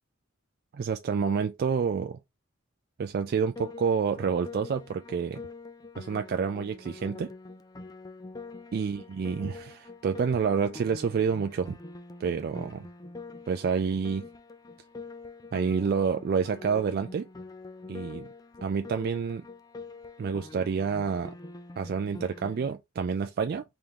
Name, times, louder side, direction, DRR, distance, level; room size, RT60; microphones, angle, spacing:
voice 1, 0.7-2.2 3.0-5.4 6.0-7.3 8.7-11.8 12.2-12.9 13.5-14.2 15.5-17.3 17.9-18.3 18.6-19.4 20.2-21.3 21.8-23.6, right 6 dB, 50° right, 0.3 m, -28 dB
Piano, 3.6-22.7, left 3 dB, 20° left, 0.4 m, -45 dB
3.6 x 3.5 x 2.9 m
head